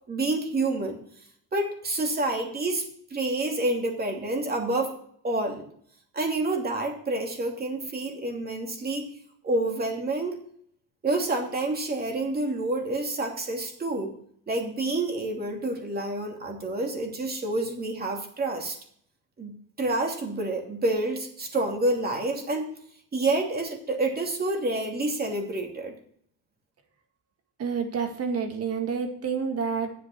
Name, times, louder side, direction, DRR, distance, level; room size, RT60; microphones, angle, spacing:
voice 1, 0.1-1.0 1.5-4.9 5.2-5.6 6.1-9.1 9.4-10.4 11.0-14.1 14.5-18.8 19.4-22.7 23.1-25.9, right 2 dB, 30° right, 2 dB, 2.8 m, -28 dB
voice 2, 27.6-30.0, right 6 dB, 45° right, 5 dB, 2.2 m, -29 dB
9.9 x 7.6 x 6.1 m, 0.63 s
cardioid pair, 105°, 33 cm